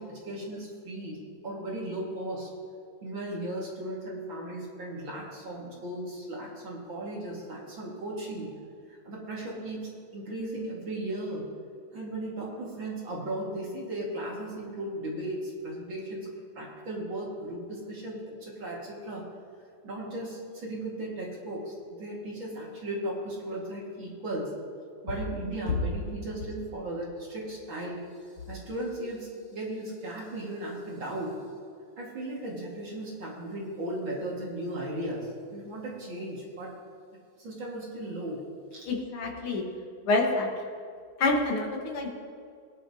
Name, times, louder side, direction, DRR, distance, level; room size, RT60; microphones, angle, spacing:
voice 1, 0.0-2.5 3.0-8.5 9.0-11.4 11.9-16.3 16.5-19.2 19.8-24.5 25.0-28.0 28.5-31.3 32.0-36.7 37.4-38.4 38.7-38.9, right 1 dB, 40° right, -4 dB, 2.1 m, -36 dB
voice 2, 38.9-39.6 40.0-40.5 41.2-42.1, left 2 dB, 55° left, 0 dB, 1.6 m, -27 dB
18.0 x 10.5 x 2.8 m, 2.3 s
omnidirectional pair, 3.9 m